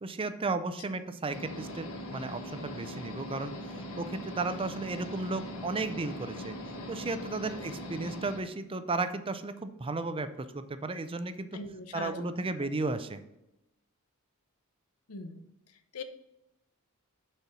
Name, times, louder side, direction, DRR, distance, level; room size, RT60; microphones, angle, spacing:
voice 1, 0.0-3.5 4.0-6.6 6.9-11.5 11.9-13.2, right 3 dB, 25° right, 11 dB, 0.5 m, -34 dB
sound 1, 1.3-8.4, equal, 70° left, 1.4 m, -41 dB
voice 2, 11.5-12.7 15.1-16.0, left 3 dB, 85° left, 8 dB, 0.8 m, -43 dB
6.7 x 4.3 x 6.1 m, 0.90 s
head